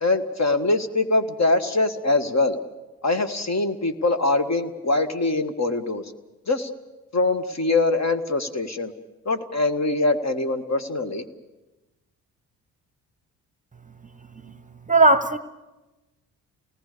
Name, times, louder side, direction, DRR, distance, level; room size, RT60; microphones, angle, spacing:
voice 1, 0.0-2.6 3.0-6.0 6.5-6.7 7.1-8.9 9.3-11.2, left 2 dB, 35° left, 9 dB, 1.9 m, -23 dB
voice 2, 14.9-15.4, right 2 dB, 15° right, 13 dB, 1.2 m, -17 dB
28.5 x 18.5 x 6.9 m, 1.1 s
hypercardioid pair, 50°, 45 cm